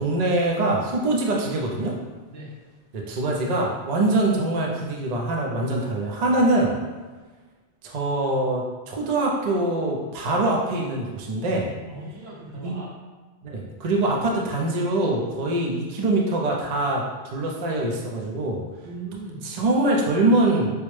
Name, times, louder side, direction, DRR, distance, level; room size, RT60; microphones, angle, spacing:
voice 1, 0.0-1.9 2.9-6.7 7.8-11.7 12.6-12.8 13.4-18.6 19.4-20.7, right 2 dB, 50° right, -1 dB, 0.5 m, -23 dB
voice 2, 11.9-12.9 18.8-19.5, right 2 dB, 65° right, -4 dB, 1.1 m, -38 dB
4.7 x 2.0 x 3.1 m, 1.3 s
omnidirectional pair, 1.1 m